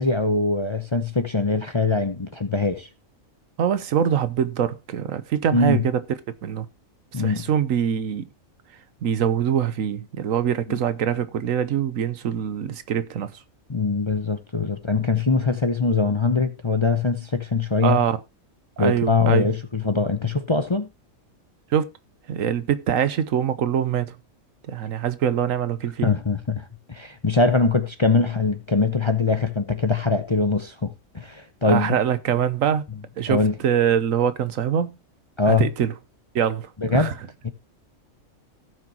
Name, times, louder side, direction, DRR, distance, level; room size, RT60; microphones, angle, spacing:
voice 1, 0.0-2.9 5.5-5.8 7.1-7.5 10.7-10.8 13.7-18.0 18.8-20.9 26.0-31.9 33.3-33.6 35.4-35.7 36.8-37.1 37.4-37.5, left 4 dB, 25° left, 0.7 m, -22 dB
voice 2, 3.6-6.0 6.4-6.7 7.1-8.3 9.0-13.3 17.8-18.2 18.8-19.5 21.7-21.9 22.3-24.2 24.7-26.1 31.6-32.8 33.2-35.0 35.5-35.9 36.3-37.1, right 9 dB, 75° right, 1.2 m, -23 dB
17.5 x 6.0 x 2.9 m
omnidirectional pair, 1.4 m